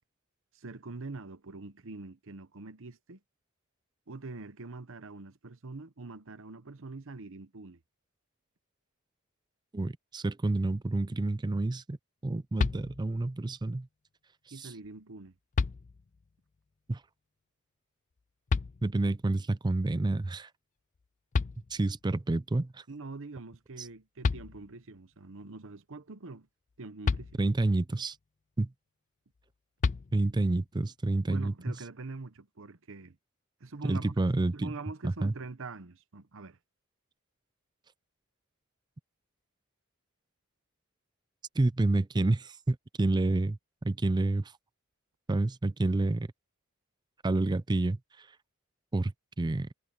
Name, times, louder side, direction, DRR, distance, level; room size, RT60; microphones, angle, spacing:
voice 1, 0.5-3.2 4.1-7.8 14.5-15.3 22.9-26.5 26.8-27.4 31.3-33.2 33.6-34.1 34.5-36.6, right 3 dB, 65° right, 1.0 m, -44 dB
voice 2, 9.7-12.0 12.2-13.9 14.6-14.7 16.9-17.0 18.8-20.5 21.7-22.7 27.4-28.2 28.6-28.7 30.1-31.5 33.8-34.7 35.0-35.3 41.6-43.6 43.8-44.5 45.3-46.3 47.2-48.0 48.9-49.1 49.4-49.7, right 2 dB, 20° right, 0.4 m, -28 dB
sound 1, 12.6-13.3 14.8-14.9 15.5-16.3 18.5-19.2 21.0-21.1 21.3-22.2 23.9-24.0 24.2-25.0 27.0-27.9 29.8-30.6, left 4 dB, 35° left, 0.4 m, -32 dB
head